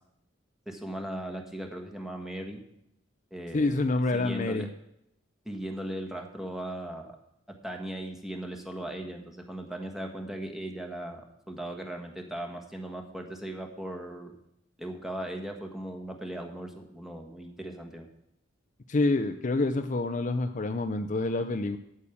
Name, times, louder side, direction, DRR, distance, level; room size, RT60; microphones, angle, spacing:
voice 1, 0.7-2.6 3.3-4.7 5.4-7.2 7.6-14.3 14.8-18.1, right 1 dB, ahead, 3 dB, 1.4 m, -38 dB
voice 2, 3.5-4.7 18.9-21.8, left 2 dB, 40° left, 9 dB, 0.5 m, -27 dB
8.8 x 8.4 x 7.1 m, 0.79 s
head